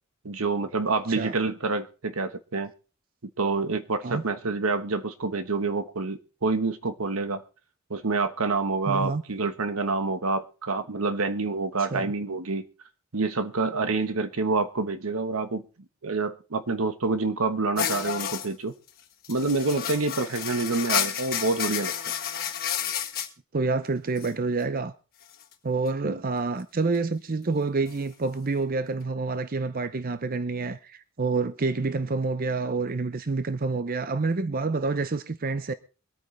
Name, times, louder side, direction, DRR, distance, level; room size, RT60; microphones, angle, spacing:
voice 1, 0.2-2.7 3.4-7.4 7.9-12.6 13.1-15.6 16.0-18.7 19.3-22.1 26.0-26.2, right 3 dB, 85° right, 1.2 m, -27 dB
voice 2, 8.9-9.2 11.9-12.1 23.5-24.9 25.6-35.7, right 3 dB, 45° right, 0.6 m, -28 dB
sound 1, 17.8-18.5 18.9-19.0 19.2-23.3 24.2-24.3 25.3-25.5 27.9-28.0, left 9 dB, 45° left, 1.5 m, -30 dB
24.0 x 9.0 x 3.3 m
head